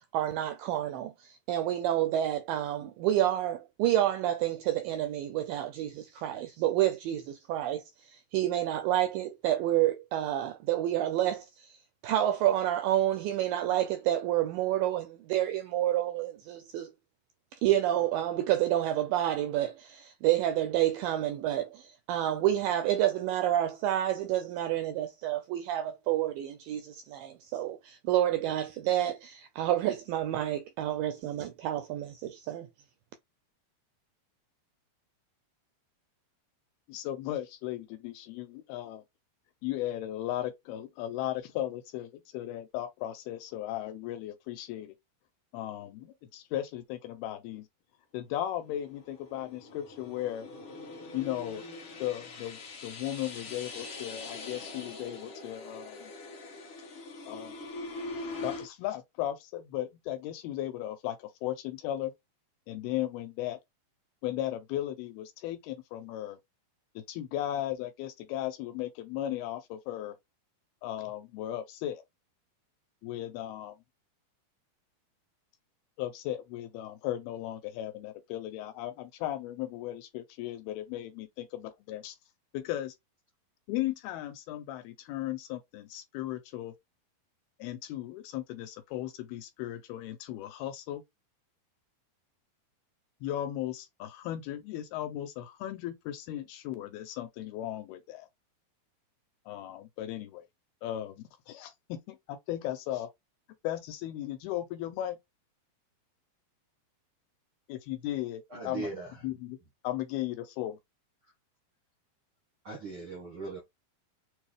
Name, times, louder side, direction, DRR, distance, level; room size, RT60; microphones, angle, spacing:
voice 1, 0.1-11.8 12.0-16.9 17.6-32.7, right 12 dB, 85° right, 2.0 m, -29 dB
voice 2, 36.9-39.0 39.6-44.9 45.5-47.7 48.1-50.5 51.1-51.6 52.0-56.1 57.3-57.5 58.4-62.1 62.7-63.6 64.2-66.4 67.0-70.2 70.8-72.0 73.0-73.8 76.0-82.2 82.5-82.9 83.7-86.7 87.6-91.0 93.2-98.3 99.5-100.4 100.8-103.1 103.6-105.2 107.7-108.9 109.2-109.6 109.8-110.8, left 13 dB, 80° left, 2.5 m, -36 dB
sound 1, 48.6-58.7, left 3 dB, 60° left, 1.3 m, -43 dB
voice 3, 108.5-109.1 112.6-113.6, right 3 dB, 65° right, 1.2 m, -39 dB
6.8 x 2.3 x 3.2 m
omnidirectional pair, 4.5 m